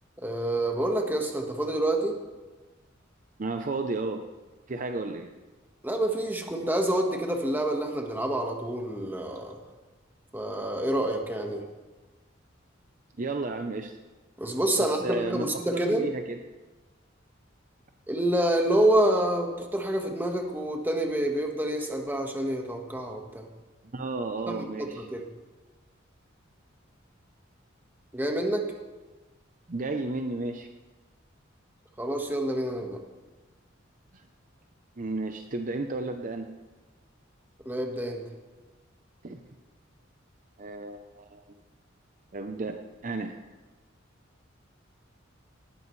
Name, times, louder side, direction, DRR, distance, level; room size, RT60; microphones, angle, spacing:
voice 1, 0.2-2.2 5.8-9.6 10.3-11.6 14.4-16.0 18.1-23.4 24.5-25.2 28.1-28.7 32.0-33.0 37.6-38.2, right 1 dB, 10° right, 2 dB, 1.4 m, -27 dB
voice 2, 3.4-4.3 4.7-5.3 13.2-14.0 14.8-16.4 23.9-25.1 29.7-30.7 34.1-34.2 35.0-36.5 39.2-39.4 40.6-41.5 42.3-43.4, right 2 dB, 40° right, 6 dB, 0.6 m, -33 dB
19.0 x 12.5 x 3.2 m, 1.2 s
head